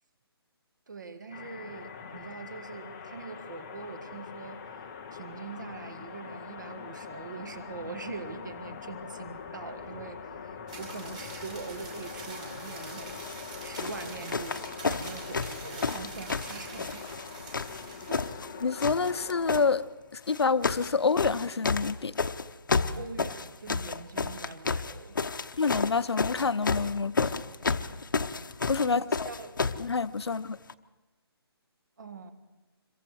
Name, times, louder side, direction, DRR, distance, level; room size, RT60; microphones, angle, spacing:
voice 1, 0.9-4.7 5.1-13.2 13.6-17.3 18.1-18.4 23.0-25.5 28.8-29.6 30.3-30.4 32.0-32.3, right 4 dB, 45° right, 1.7 m, -43 dB
sound 1, 1.3-19.8, left 6 dB, 10° left, 0.6 m, -43 dB
sound 2, 10.7-18.3, right 4 dB, 15° right, 2.4 m, -45 dB
sound 3, 13.1-13.4 13.8-17.3 17.5-18.5 18.8-19.6 20.3-20.9 21.2-29.9 30.7-30.8, left 4 dB, 50° left, 0.9 m, -31 dB
voice 2, 18.6-19.8 20.1-22.2 25.6-27.3 28.7-29.3 29.8-30.6, left 4 dB, 80° left, 0.8 m, -27 dB
26.5 x 22.5 x 4.7 m
hypercardioid pair, 180°, 13 cm